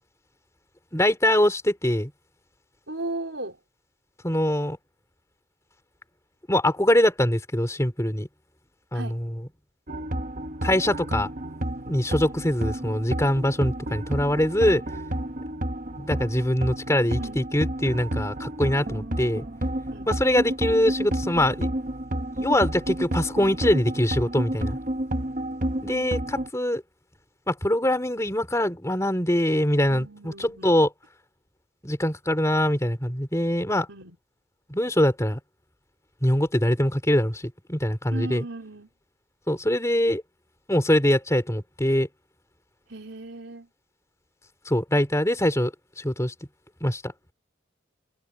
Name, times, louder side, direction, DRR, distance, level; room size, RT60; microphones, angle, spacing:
voice 1, 0.9-2.1 4.2-4.8 6.5-8.3 8.9-9.3 10.6-11.3 11.9-14.8 16.0-19.4 20.1-21.7 22.3-24.8 25.8-26.8 27.5-30.9 31.8-33.9 34.7-35.4 36.2-38.4 39.5-40.2 40.7-42.1 44.6-45.7 46.0-46.3 46.8-47.0, left 1 dB, 15° left, 3.5 m, -23 dB
voice 2, 2.9-3.6 8.9-9.2 17.2-17.5 19.9-20.1 29.9-30.8 33.9-34.2 38.1-38.9 42.9-43.7, right 2 dB, 65° right, 4.7 m, -36 dB
sound 1, 9.9-26.5, right 1 dB, 40° right, 1.4 m, -30 dB
head